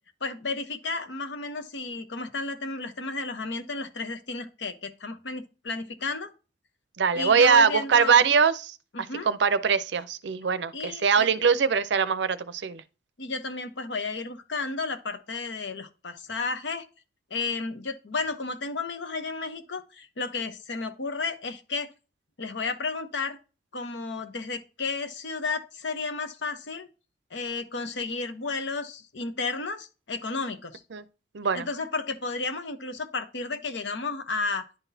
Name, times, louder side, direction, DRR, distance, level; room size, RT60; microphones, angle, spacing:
voice 1, 0.2-6.3 7.1-8.2 8.9-9.3 10.7-11.3 13.2-16.8 17.3-21.9 22.4-23.4 23.7-26.9 27.3-30.8 31.5-34.6, left 3 dB, 80° left, 0.9 m, -32 dB
voice 2, 7.0-8.8 9.2-12.8 30.9-31.0 31.3-31.7, right 6 dB, 75° right, 0.5 m, -22 dB
10.5 x 4.0 x 2.7 m
head